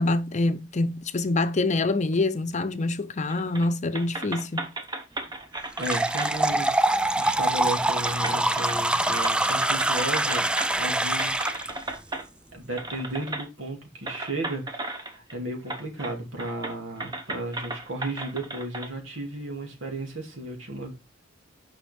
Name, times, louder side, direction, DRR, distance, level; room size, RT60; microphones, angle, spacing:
voice 1, 0.0-4.7, left 2 dB, 40° left, 0.6 m, -25 dB
sound 1, 3.3-3.7 3.9-6.3 7.4-7.5 8.0-10.9 11.2-12.3 12.8-13.5 14.1-15.3 15.7-16.1 16.4-18.9, right 2 dB, 20° right, 1.0 m, -35 dB
sound 2, 5.8-11.7, right 1 dB, 5° right, 0.3 m, -24 dB
voice 2, 5.8-6.8 7.1-10.5 10.8-11.5 12.5-20.9, right 1 dB, 80° right, 2.5 m, -34 dB
8.9 x 5.6 x 3.5 m
head